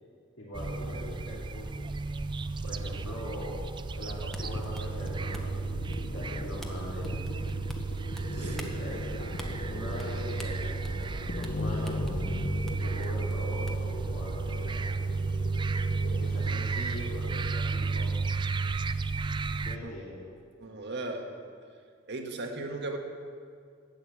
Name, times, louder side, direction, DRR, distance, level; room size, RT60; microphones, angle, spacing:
voice 1, 0.4-1.7 2.6-3.6 3.9-5.5 6.1-7.1 8.3-12.1 12.7-15.0 16.2-18.1 19.6-20.2, left 1 dB, 65° left, -8 dB, 3.0 m, -41 dB
sound 1, 0.5-19.8, right 4 dB, 25° right, 0.4 m, -33 dB
sound 2, 4.3-5.6 5.9-6.2 6.6-6.7 7.0-8.2 8.5-8.8 9.3-9.5 10.0-10.1 10.4-11.1 11.4-11.5 11.8-12.1 12.7-12.8 13.0-13.9, equal, ahead, 1.1 m, -44 dB
sound 3, 4.4-16.7, left 2 dB, 45° left, 0.6 m, -39 dB
voice 2, 20.6-21.3 22.1-23.0, right 2 dB, 60° right, 3 dB, 1.6 m, -36 dB
12.5 x 8.3 x 8.5 m, 2.1 s
head